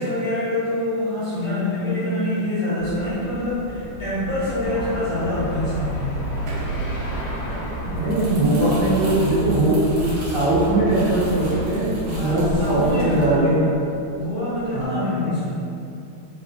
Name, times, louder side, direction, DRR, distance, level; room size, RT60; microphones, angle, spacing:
voice 1, 0.0-6.2 12.1-13.7 14.1-15.5, left 1 dB, 55° left, -13 dB, 1.5 m, -25 dB
sound 1, 2.8-13.2, right 2 dB, 80° right, 2.2 m, -36 dB
sound 2, 4.6-11.6, right 2 dB, 85° left, 2.2 m, -31 dB
voice 2, 7.8-13.5 14.7-15.2, right 1 dB, 50° right, -15 dB, 1.5 m, -20 dB
Crumpling crinkling, 7.9-14.2 14.5-14.8, right 1 dB, 65° right, 1.6 m, -37 dB
5.0 x 3.1 x 2.6 m, 2.6 s
omnidirectional pair, 3.7 m